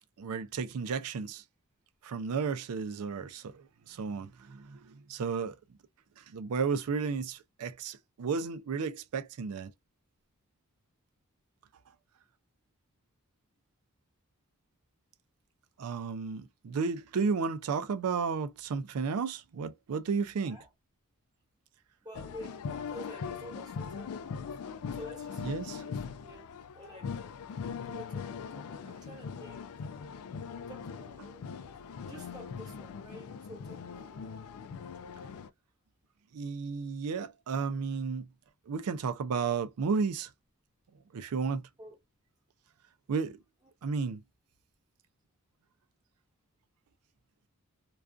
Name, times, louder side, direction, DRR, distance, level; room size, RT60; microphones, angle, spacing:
voice 1, 0.2-1.4 2.0-5.6 6.2-9.7 15.8-20.6 25.4-25.8 36.3-38.3 38.7-40.3 41.1-41.7 43.1-43.4 43.8-44.2, right 5 dB, 80° right, 0.4 m, -33 dB
voice 2, 20.3-20.7 22.0-27.3 27.8-29.7 30.7-31.8 32.1-34.5 41.8-42.0 43.6-43.7, equal, 20° right, 1.1 m, -50 dB
sound 1, 22.1-35.5, left 6 dB, 70° left, 0.3 m, -41 dB
2.4 x 2.3 x 2.3 m
head